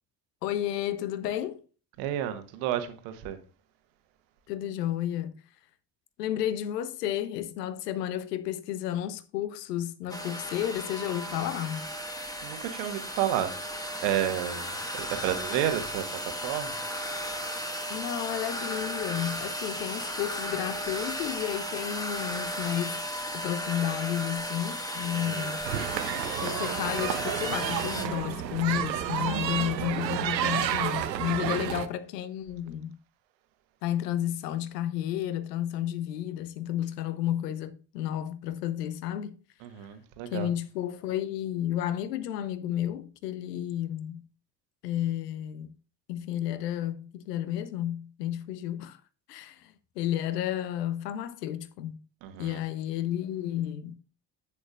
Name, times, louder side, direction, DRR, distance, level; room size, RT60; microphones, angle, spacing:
voice 1, 0.4-1.6 4.5-5.3 6.2-11.8 17.9-23.0 23.3-25.6 26.4-33.0 33.8-39.4 40.3-44.2 44.8-45.7 46.1-49.0 49.3-52.0 52.4-53.9, left 11 dB, 70° left, 0.8 m, -32 dB
voice 2, 2.0-3.4 12.4-13.5 14.0-16.0 16.4-16.8 25.1-25.6 31.4-31.5 39.6-40.5 52.2-52.6, right 11 dB, 60° right, 1.2 m, -31 dB
sound 1, 10.1-28.1, equal, 5° left, 1.5 m, -35 dB
sound 2, 25.6-31.9, right 10 dB, 85° right, 0.6 m, -30 dB
9.9 x 8.5 x 2.3 m
figure-of-eight pair, 50°, 50 cm